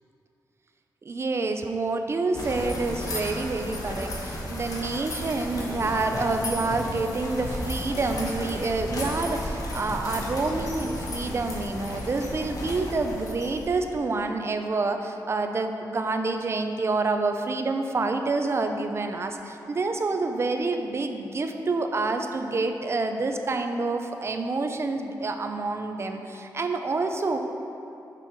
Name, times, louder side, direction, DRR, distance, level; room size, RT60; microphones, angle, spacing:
voice 1, 1.0-27.4, right 3 dB, 35° right, 6 dB, 0.5 m, -28 dB
sound 1, 2.3-13.9, left 1 dB, 55° left, 1.4 m, -33 dB
6.6 x 5.4 x 5.0 m, 2.8 s
wide cardioid pair, 110°, 7 cm